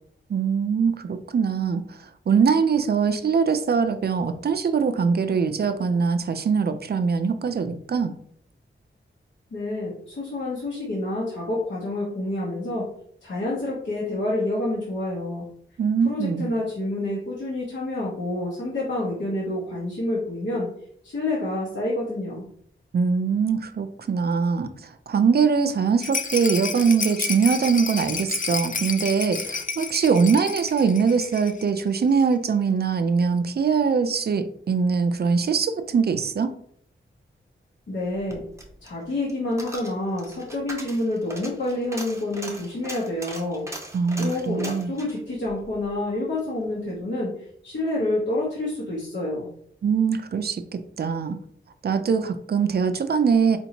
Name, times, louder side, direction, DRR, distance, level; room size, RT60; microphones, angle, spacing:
voice 1, 0.3-2.0 2.3-8.1 15.8-16.5 22.9-36.5 43.9-44.9 49.8-51.4 51.8-53.6, right 5 dB, 50° right, 10 dB, 0.4 m, -22 dB
voice 2, 9.5-12.9 13.2-15.5 16.0-20.7 21.0-22.4 37.9-38.4 38.8-43.7 44.2-49.5, left 1 dB, 60° left, -6 dB, 1.0 m, -28 dB
Rattle, 26.0-31.7 32.0-32.1 32.3-32.4, left 5 dB, 40° left, 0.4 m, -30 dB
Coin (dropping), 38.1-46.5 46.8-46.9, right 1 dB, 15° right, 0.7 m, -40 dB
4.2 x 2.7 x 2.9 m, 0.63 s
wide cardioid pair, 95°, 21 cm